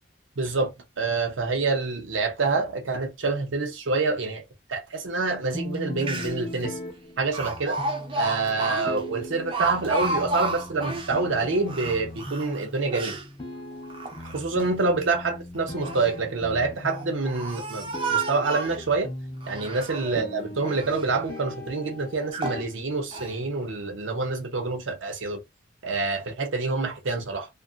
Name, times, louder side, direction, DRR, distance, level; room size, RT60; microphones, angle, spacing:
voice 1, 0.4-4.4 4.7-6.8 7.2-7.8 8.1-13.2 14.3-19.1 19.5-25.4 25.8-27.5, right 3 dB, 90° right, 0.7 m, -27 dB
sound 1, 5.5-23.5, left 1 dB, 25° left, 0.7 m, -39 dB
Speech, 5.7-5.8 6.0-6.6 7.3-11.2 11.6-13.3 13.8-14.7 15.6-16.1 16.8-18.9 19.4-20.2 20.6-21.1 21.7-21.8 22.3-22.6 23.1-23.4, right 3 dB, 25° right, 0.4 m, -32 dB
2.5 x 2.4 x 2.4 m
head